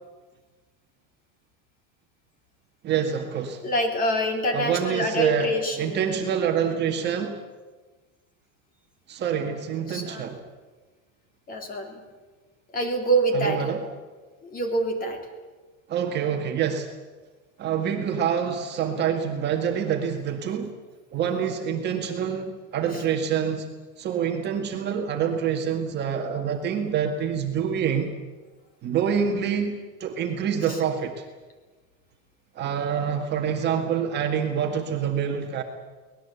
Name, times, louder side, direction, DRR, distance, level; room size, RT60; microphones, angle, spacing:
voice 1, 2.8-3.6 4.5-7.4 9.1-10.4 13.3-13.8 15.9-16.9 17.6-20.7 21.1-23.7 24.0-28.1 28.8-31.3 32.6-35.6, right 8 dB, 25° right, 2 dB, 1.9 m, -26 dB
voice 2, 3.6-6.2 9.9-10.3 11.5-12.0 12.7-13.7 14.4-15.2 22.9-23.0 30.7-30.8, right 1 dB, 20° left, 5 dB, 3.0 m, -26 dB
24.0 x 19.5 x 8.3 m, 1.3 s
supercardioid pair, 175°, 41 cm